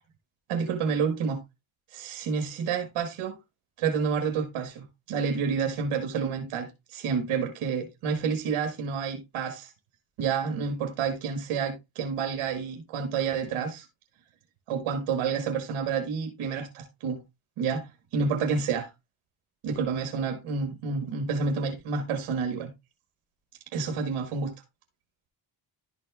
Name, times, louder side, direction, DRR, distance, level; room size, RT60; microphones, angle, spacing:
voice 1, 0.5-1.4 1.9-3.4 3.8-9.7 10.2-13.9 14.7-17.2 17.6-18.9 19.6-22.7 23.7-24.5, right 5 dB, 90° right, 1.6 m, -29 dB
11.5 x 4.2 x 3.4 m
cardioid pair, 60°, 49 cm